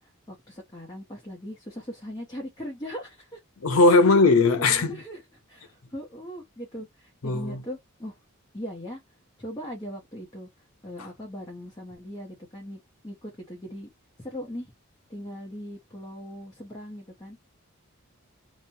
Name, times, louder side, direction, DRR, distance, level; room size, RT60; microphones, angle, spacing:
voice 1, 0.0-3.4 4.0-4.1 4.3-5.2 5.5-8.2 8.5-9.0 9.4-10.5 10.8-13.9 14.2-14.7 15.1-17.4, equal, 20° left, 0.7 m, -39 dB
voice 2, 3.6-5.0 7.2-7.6, left 3 dB, 75° left, 0.6 m, -19 dB
3.0 x 2.1 x 2.7 m
head